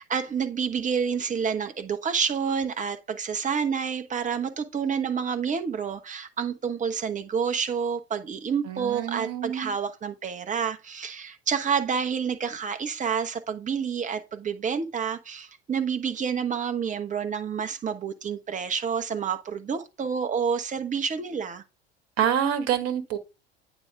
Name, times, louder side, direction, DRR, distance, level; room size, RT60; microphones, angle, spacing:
voice 1, 0.0-21.6, right 6 dB, 25° right, 1.1 m, -29 dB
voice 2, 8.6-9.7 22.2-23.2, right 9 dB, 50° right, 1.4 m, -27 dB
8.9 x 4.0 x 3.5 m
hypercardioid pair, 70°, 31 cm